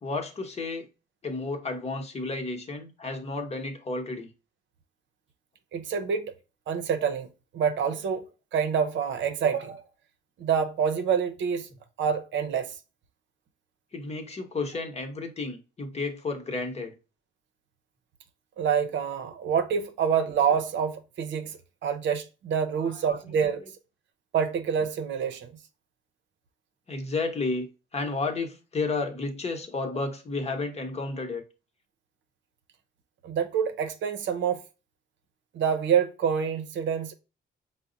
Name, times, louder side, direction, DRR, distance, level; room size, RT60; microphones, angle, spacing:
voice 1, 0.0-0.9 1.2-4.3 13.9-16.9 22.8-22.9 26.9-31.4, left 3 dB, 30° left, 1.0 m, -32 dB
voice 2, 5.7-6.3 6.7-7.3 7.5-8.2 8.5-9.8 10.4-11.7 12.0-12.7 18.6-23.6 24.3-25.5 33.2-34.6 35.5-37.1, right 7 dB, 70° right, 0.6 m, -27 dB
4.6 x 2.1 x 3.8 m
cardioid pair, 90°, 20 cm